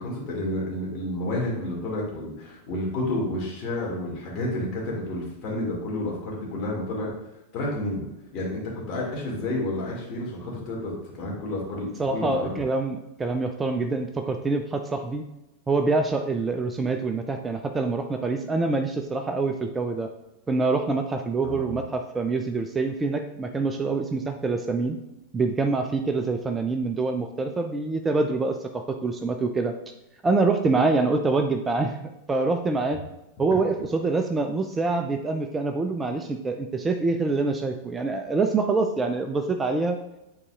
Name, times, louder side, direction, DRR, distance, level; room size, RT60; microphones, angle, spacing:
voice 1, 0.0-7.1 7.5-8.0 8.3-8.6 8.9-12.6 21.4-21.7, left 1 dB, 40° left, -3 dB, 2.1 m, -30 dB
voice 2, 12.0-15.2 15.7-20.1 20.5-25.0 25.3-29.7 30.2-32.0 32.3-33.0 33.4-40.0, right 3 dB, 15° right, 6 dB, 0.4 m, -25 dB
9.6 x 4.0 x 2.4 m, 0.94 s
figure-of-eight pair, 90°, 0 cm